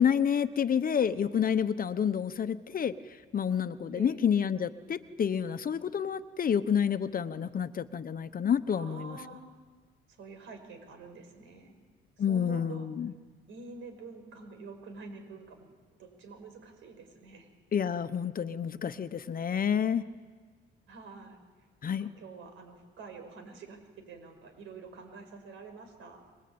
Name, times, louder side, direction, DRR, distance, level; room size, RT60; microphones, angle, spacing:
voice 1, 0.0-2.9 3.3-9.2 12.2-13.1 17.7-20.0 21.8-22.1, left 8 dB, 45° left, 12 dB, 1.1 m, -29 dB
voice 2, 8.7-9.4 10.1-11.8 12.2-12.9 13.5-15.7 16.0-17.5 20.9-21.4 21.9-26.2, right 4 dB, 85° right, 7 dB, 5.3 m, -47 dB
27.5 x 21.5 x 8.8 m, 1.5 s
cardioid pair, 90°, 20 cm